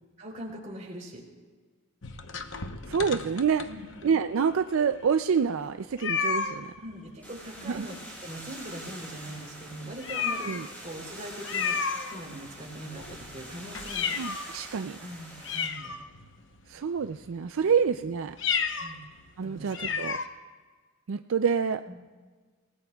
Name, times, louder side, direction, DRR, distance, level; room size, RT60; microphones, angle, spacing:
voice 1, 0.2-1.2 3.7-3.8 6.8-11.8 12.1-14.2 15.0-15.9 17.6-17.7 18.8-19.0 19.4-20.0 21.9-22.0, right 1 dB, 35° right, -1 dB, 3.5 m, -41 dB
sound 1, 2.0-4.1 4.7-4.8 5.1-5.2 6.0-6.6 7.9-8.4 8.7-8.9 9.4-9.5 10.0-10.7 11.4-12.5 12.9-14.6 15.0-15.1 15.4-16.4 17.0-17.3 18.3-18.9 19.3-19.4 19.7-20.3, left 6 dB, 60° left, 0.9 m, -32 dB
voice 2, 2.9-3.7 4.0-6.7 7.7-7.9 10.5-10.7 14.2-15.0 16.7-18.4 19.4-20.2 21.1-21.8, right 6 dB, 75° right, 8 dB, 0.4 m, -27 dB
sound 2, 7.2-15.7, right 1 dB, 10° left, 5.0 m, -45 dB
28.0 x 18.0 x 2.3 m, 1.5 s
head